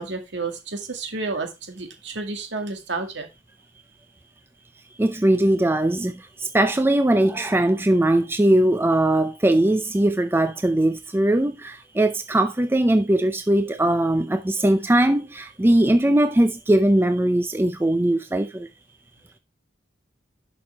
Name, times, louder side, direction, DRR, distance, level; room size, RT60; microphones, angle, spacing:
voice 1, 0.0-3.3, right 3 dB, 65° right, 2.1 m, -31 dB
voice 2, 5.0-18.7, right 1 dB, 10° right, 0.4 m, -20 dB
11.0 x 6.1 x 3.4 m
head